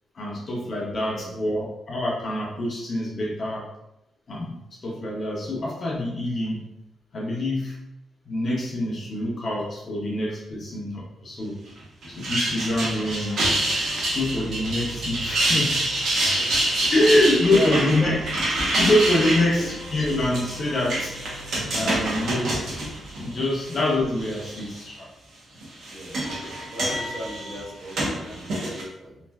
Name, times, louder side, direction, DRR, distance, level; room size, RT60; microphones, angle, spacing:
voice 1, 0.1-3.6 4.3-6.6 7.1-7.8 8.3-11.6 12.1-13.5 14.1-15.9 16.2-16.3 16.9-18.2 18.8-21.1 21.7-22.5 23.2-25.1, left 1 dB, 35° left, -4 dB, 0.6 m, -25 dB
voice 2, 0.9-1.4 16.4-16.7 17.4-17.7 18.0-18.2 19.3-19.7 25.9-29.2, right 1 dB, 30° right, -6 dB, 0.9 m, -36 dB
sound 1, 12.0-23.8 24.2-24.8 25.6-28.8, right 1 dB, 70° right, 0.8 m, -27 dB
sound 2, 13.0-24.0, equal, 90° left, 0.8 m, -43 dB
3.2 x 2.4 x 2.2 m, 0.85 s
wide cardioid pair, 170°, 0 cm